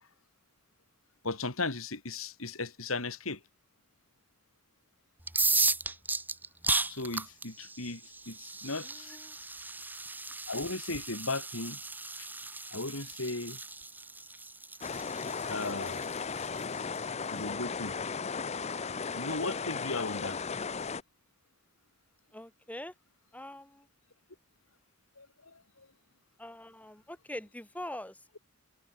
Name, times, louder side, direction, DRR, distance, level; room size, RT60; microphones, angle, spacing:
voice 1, 1.2-3.4 6.9-8.0 8.3-9.2 10.5-11.8 12.7-13.6 15.5-16.0 17.3-17.9 18.7-20.4 25.2-25.9, left 3 dB, 85° left, 3.9 m, -36 dB
sound 1, 5.2-17.0, right 3 dB, 10° right, 2.4 m, -35 dB
voice 2, 8.8-9.4 22.3-22.9 23.3-23.9 26.4-28.4, left 1 dB, 5° left, 3.8 m, -44 dB
sound 2, 14.8-21.0, left 5 dB, 30° left, 0.7 m, -36 dB
head